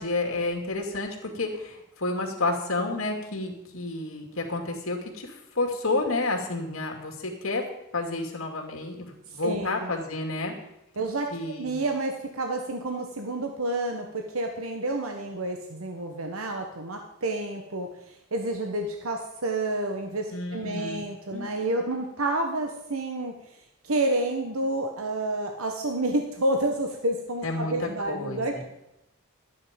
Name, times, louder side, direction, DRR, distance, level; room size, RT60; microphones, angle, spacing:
voice 1, 0.0-7.6 7.9-10.5 11.3-11.8 20.3-21.5 27.4-28.6, left 2 dB, 80° left, 1 dB, 2.5 m, -30 dB
voice 2, 9.3-9.9 11.0-23.3 23.8-28.6, right 2 dB, 85° right, 4 dB, 1.3 m, -29 dB
13.5 x 9.4 x 5.2 m, 0.88 s
head